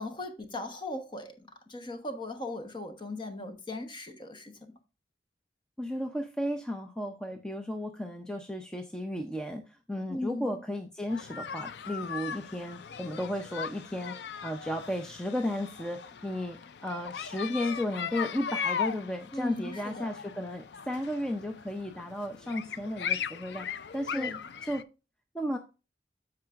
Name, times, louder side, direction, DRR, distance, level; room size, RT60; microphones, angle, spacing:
voice 1, 0.0-4.6 10.1-10.6 19.3-20.1 24.1-24.4, left 2 dB, 25° left, 1.0 m, -38 dB
voice 2, 5.8-24.3 24.6-24.8 25.3-25.6, left 1 dB, 5° left, 0.5 m, -34 dB
sound 1, 11.1-24.8, left 7 dB, 70° left, 0.4 m, -38 dB
13.5 x 4.8 x 2.4 m
head